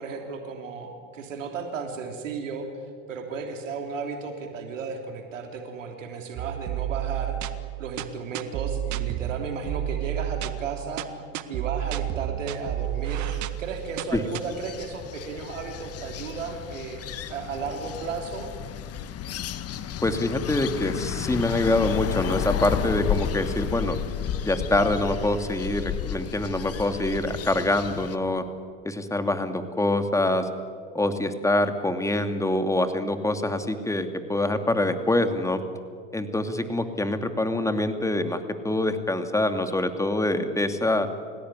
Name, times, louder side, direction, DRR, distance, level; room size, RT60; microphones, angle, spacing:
voice 1, 0.0-2.7 3.1-7.4 7.8-11.0 11.5-13.3 13.6-18.5, right 5 dB, 90° right, 4 dB, 3.3 m, -34 dB
sound 1, 6.4-14.4, right 13 dB, 50° right, 1.7 m, -31 dB
sound 2, 12.9-28.2, left 9 dB, 40° left, 1.6 m, -32 dB
voice 2, 20.0-24.0 24.4-28.4 28.8-30.5 30.9-35.6 36.1-41.1, left 1 dB, 10° left, 7 dB, 2.6 m, -25 dB
30.0 x 17.0 x 9.8 m, 2.2 s
hypercardioid pair, 90°, 37 cm